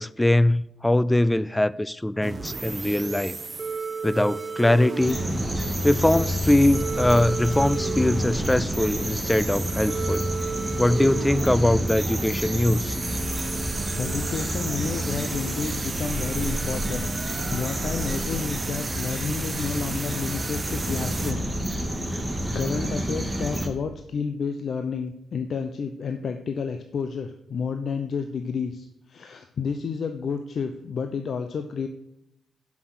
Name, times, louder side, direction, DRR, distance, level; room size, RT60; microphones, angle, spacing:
voice 1, 0.0-3.4 4.0-5.2 5.8-10.3 10.8-13.0, left 1 dB, 10° left, 0.4 m, -22 dB
sound 1, 2.2-21.3, right 4 dB, 35° right, 0.8 m, -34 dB
sound 2, 5.0-23.7, equal, 15° right, 2.0 m, -29 dB
voice 2, 14.0-17.1 17.5-21.5 22.5-31.9, left 5 dB, 60° left, 0.6 m, -30 dB
7.7 x 6.1 x 6.2 m
cardioid pair, 65°, 0 cm